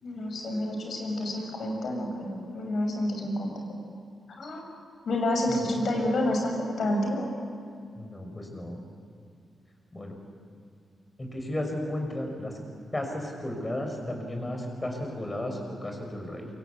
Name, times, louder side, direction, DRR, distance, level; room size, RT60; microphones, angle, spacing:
voice 1, 0.0-3.5 4.4-4.6 5.0-7.3, left 1 dB, 60° left, 2 dB, 6.7 m, -29 dB
voice 2, 5.5-5.9 8.0-8.8 9.9-10.2 11.2-12.5 12.9-16.5, left 1 dB, 20° left, 3 dB, 6.0 m, -34 dB
28.0 x 25.0 x 8.4 m, 2.3 s
wide cardioid pair, 115°, 0 cm